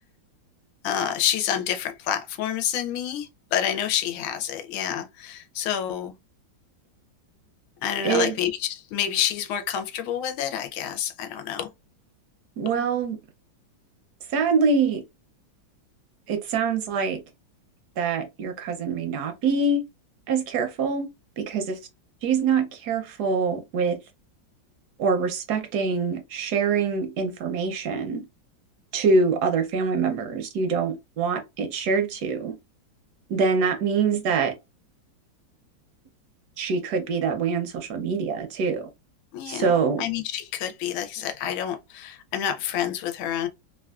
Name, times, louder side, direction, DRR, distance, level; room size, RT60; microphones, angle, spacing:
voice 1, 0.8-6.1 7.8-11.7 39.3-39.7 40.0-43.5, left 10 dB, 90° left, 1.4 m, -28 dB
voice 2, 8.0-8.3 12.6-13.2 14.3-15.0 16.3-17.2 18.0-19.8 20.3-21.1 21.4-21.8 22.2-24.0 25.0-28.3 28.9-32.5 33.3-34.6 36.6-38.9 39.5-40.1, right 5 dB, 70° right, 1.0 m, -24 dB
3.4 x 2.3 x 2.3 m
omnidirectional pair, 2.1 m